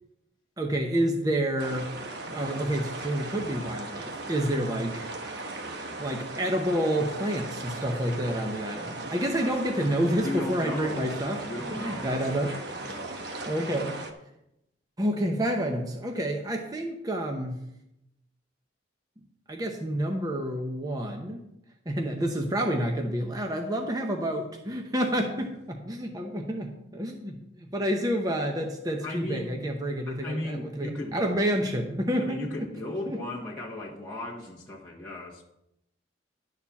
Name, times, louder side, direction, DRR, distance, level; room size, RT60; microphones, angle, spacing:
voice 1, 0.6-1.9 2.3-5.1 6.0-11.4 11.7-12.5 12.8-13.0 13.5-14.0 15.0-17.6 19.5-21.4 21.9-32.7 33.1-33.2, equal, 20° right, 2 dB, 0.8 m, -29 dB
sound 1, 1.6-14.1, right 2 dB, 55° right, 1.1 m, -38 dB
voice 2, 10.2-13.3 29.0-29.6 30.1-31.2 32.2-35.4, left 1 dB, 5° left, -8 dB, 1.4 m, -36 dB
11.5 x 4.4 x 7.1 m, 0.84 s
head